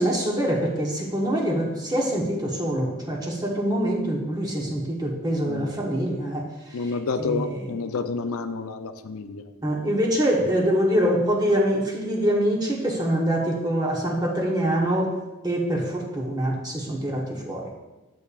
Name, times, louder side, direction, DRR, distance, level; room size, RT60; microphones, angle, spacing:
voice 1, 0.0-7.7 9.6-15.1 15.4-17.7, equal, 15° right, -1 dB, 0.9 m, -25 dB
voice 2, 6.7-9.4, left 4 dB, 75° left, 8 dB, 0.5 m, -29 dB
10.0 x 6.8 x 2.5 m, 1.1 s
head